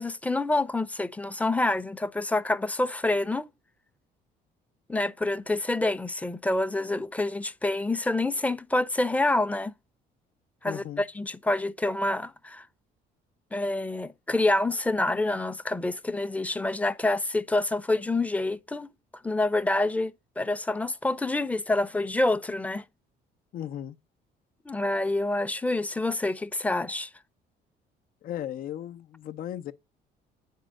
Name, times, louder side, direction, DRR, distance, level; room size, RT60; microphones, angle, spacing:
voice 1, 0.0-3.5 4.9-9.7 10.6-12.7 13.5-18.9 19.2-22.8 24.7-27.1, left 2 dB, 10° left, 0.7 m, -27 dB
voice 2, 10.6-11.0 23.5-24.0 28.2-29.7, left 11 dB, 60° left, 0.7 m, -36 dB
9.1 x 4.6 x 6.4 m
cardioid pair, 110°, 17 cm